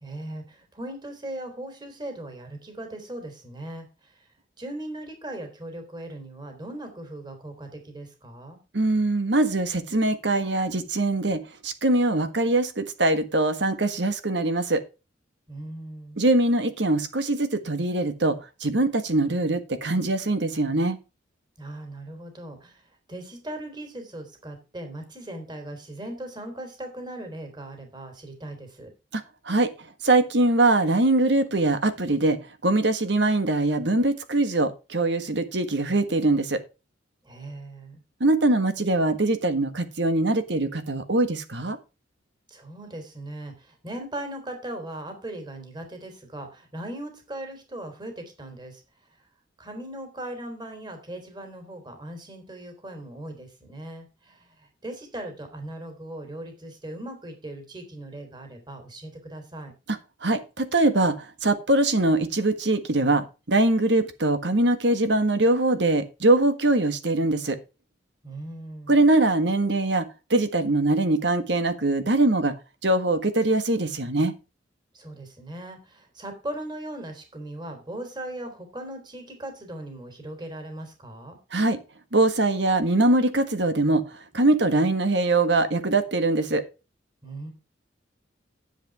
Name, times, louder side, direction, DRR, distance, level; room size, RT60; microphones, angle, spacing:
voice 1, 0.0-4.1 4.6-8.6 15.5-16.2 21.6-22.8 23.1-28.9 37.2-38.0 42.5-48.8 49.6-59.7 68.2-68.9 74.9-81.4 87.2-87.5, right 1 dB, 25° right, 5 dB, 3.2 m, -38 dB
voice 2, 8.7-14.8 16.2-18.4 18.6-21.0 29.1-29.7 30.0-32.4 32.6-36.6 38.2-41.8 60.2-67.6 68.9-72.5 72.8-74.3 81.5-81.8 82.1-84.0 84.3-86.6, right 2 dB, 65° right, 10 dB, 1.6 m, -22 dB
10.5 x 7.8 x 4.7 m, 0.29 s
head